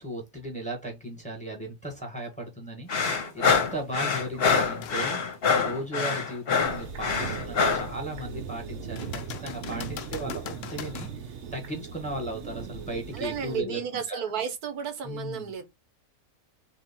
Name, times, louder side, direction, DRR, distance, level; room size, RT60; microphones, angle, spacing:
voice 1, 0.0-14.2 15.0-15.5, right 1 dB, 5° left, 1.5 m, -37 dB
sound 1, 2.9-7.9, left 5 dB, 45° left, 1.1 m, -25 dB
sound 2, 4.8-5.1 5.7-5.8 9.0-11.2 14.8-14.9, left 9 dB, 65° left, 0.9 m, -40 dB
sound 3, 6.6-13.6, right 6 dB, 60° right, 1.0 m, -39 dB
voice 2, 13.1-15.6, right 7 dB, 90° right, 1.4 m, -32 dB
3.6 x 2.9 x 4.3 m
omnidirectional pair, 1.6 m